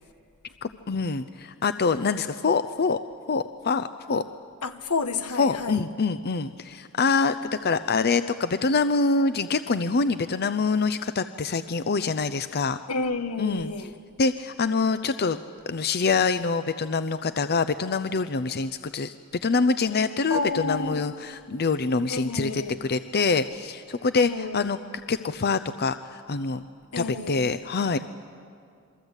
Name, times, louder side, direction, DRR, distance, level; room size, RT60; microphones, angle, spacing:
voice 1, 0.6-3.0 3.3-4.2 5.4-7.4 7.6-12.8 13.4-13.7 14.2-15.4 15.7-19.1 19.4-24.8 25.1-26.6 27.0-28.0, left 4 dB, 45° left, 0.6 m, -25 dB
voice 2, 4.6-5.8 12.9-13.9 20.3-21.0 22.1-22.8 24.2-24.7 26.9-27.5, left 3 dB, 85° left, 1.4 m, -30 dB
28.0 x 23.5 x 8.2 m
head